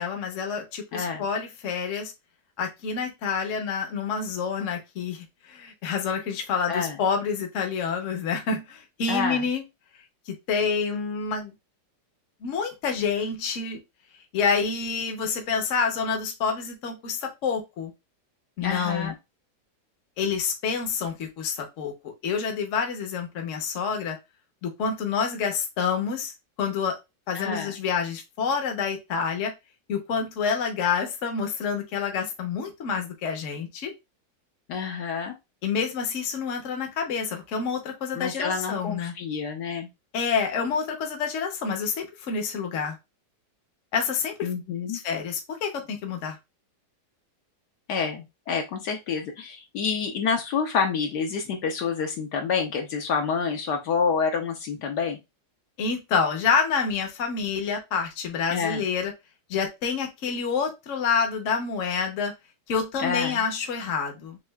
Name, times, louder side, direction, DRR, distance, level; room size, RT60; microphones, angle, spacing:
voice 1, 0.0-2.1 2.6-9.6 10.3-11.5 12.4-13.8 14.3-17.9 18.6-19.1 20.2-24.2 24.6-26.3 26.6-27.0 27.3-29.5 29.9-33.9 35.6-39.1 40.1-43.0 43.9-44.5 44.9-46.4 55.8-59.1 59.5-62.3 62.7-64.4, left 6 dB, 50° left, 3 dB, 1.1 m, -28 dB
voice 2, 0.9-1.2 6.7-7.0 9.1-9.4 18.6-19.1 27.3-27.8 34.7-35.3 38.1-39.9 44.4-45.0 47.9-55.2 58.5-58.8 63.0-63.4, left 5 dB, 70° left, 3 dB, 1.3 m, -28 dB
6.3 x 2.4 x 2.3 m, 0.23 s
omnidirectional pair, 1.9 m